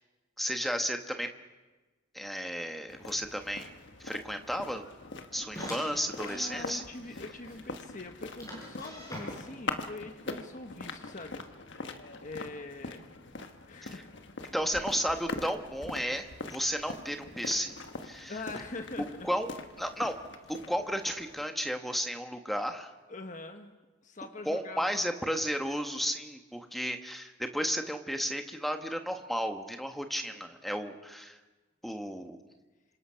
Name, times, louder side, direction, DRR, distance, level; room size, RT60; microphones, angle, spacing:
voice 1, 0.4-1.3 2.1-4.8 5.3-6.8 13.8-13.9 14.5-17.7 18.0-18.3 19.0-19.5 19.8-20.1 20.5-22.9 24.4-31.4 31.8-32.4, equal, ahead, 5 dB, 1.4 m, -33 dB
sound 1, 2.9-21.4, left 3 dB, 60° left, 1.4 m, -43 dB
sound 2, 5.5-6.6 7.1-7.2 7.5-7.6 8.4-9.7, equal, 15° left, 7.2 m, -43 dB
voice 2, 6.2-11.4 12.2-13.1 13.7-14.1 14.4-14.5 18.3-19.3 23.1-23.7 24.0-25.0, left 2 dB, 40° left, 6 dB, 1.3 m, -43 dB
26.5 x 26.5 x 5.8 m, 1.2 s
head